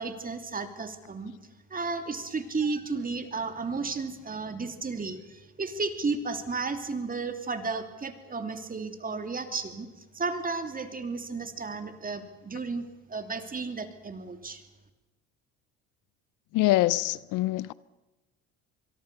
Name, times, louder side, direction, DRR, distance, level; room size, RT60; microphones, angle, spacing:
voice 1, 0.0-1.3 1.7-9.9 10.1-12.8 13.1-14.6, right 4 dB, 25° right, 3.0 m, -33 dB
voice 2, 16.5-17.7, left 17 dB, 70° left, 0.7 m, -24 dB
25.5 x 23.0 x 7.0 m
supercardioid pair, 85°, 32 cm